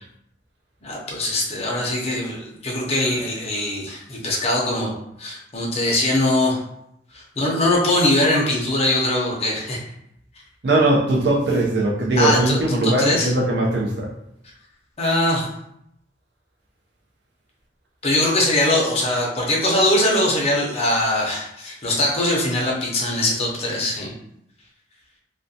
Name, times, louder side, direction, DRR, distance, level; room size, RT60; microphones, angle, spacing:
voice 1, 0.8-4.9 5.2-6.6 7.1-9.8 12.2-13.3 15.0-15.5 18.0-24.1, left 1 dB, 35° left, -3 dB, 0.6 m, -21 dB
voice 2, 10.6-14.1, right 2 dB, 60° right, -1 dB, 0.5 m, -20 dB
2.4 x 2.1 x 2.6 m, 0.76 s
head